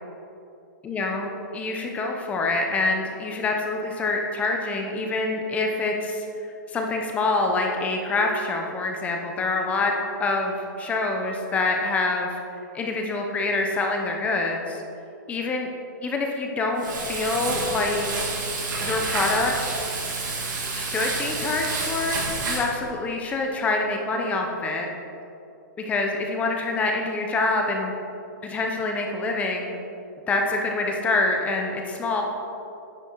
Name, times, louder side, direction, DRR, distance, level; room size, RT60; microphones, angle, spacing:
voice 1, 0.9-6.2 6.7-9.9 10.2-12.4 12.7-14.8 15.3-15.7 16.0-18.5 18.8-19.7 20.7-22.2 22.5-24.9 25.9-27.9 28.4-29.8 30.3-32.2, left 3 dB, 15° left, 2 dB, 0.8 m, -26 dB
Frying (food), 16.8-22.7, right 3 dB, 70° right, 2.5 m, -29 dB
9.8 x 8.2 x 4.7 m, 2.8 s
hypercardioid pair, 160°, 10 cm